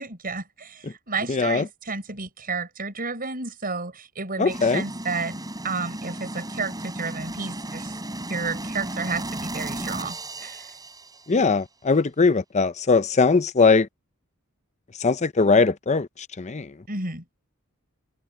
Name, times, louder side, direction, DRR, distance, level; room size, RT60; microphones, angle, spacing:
voice 1, 0.0-7.9 8.3-10.7 16.9-17.2, right 4 dB, 40° right, 6.2 m, -32 dB
voice 2, 1.3-1.6 4.4-4.8 11.3-13.9 15.0-16.1 16.4-16.7, left 4 dB, 30° left, 0.6 m, -20 dB
sound 1, 4.5-11.4, right 1 dB, 15° right, 7.6 m, -34 dB
head